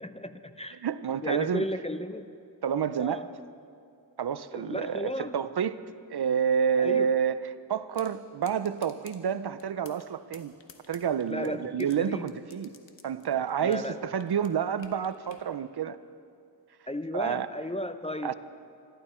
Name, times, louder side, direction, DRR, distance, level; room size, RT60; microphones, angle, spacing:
voice 1, 0.0-0.8 1.2-2.4 3.0-3.3 4.5-5.3 6.8-7.1 11.3-12.3 13.6-14.0 16.9-18.3, left 1 dB, 15° left, 10 dB, 0.5 m, -34 dB
voice 2, 0.7-1.6 2.6-3.3 4.2-5.8 6.1-10.5 10.9-12.7 13.0-16.0 17.1-17.5 18.2-18.3, right 7 dB, 60° right, 14 dB, 0.6 m, -29 dB
sound 1, 7.9-8.1 8.4-9.2 9.6-10.1 10.3-11.9 12.3-14.0 14.2-15.4, left 6 dB, 85° left, 1.3 m, -52 dB
26.5 x 12.0 x 4.4 m, 2.4 s
wide cardioid pair, 70°, 44 cm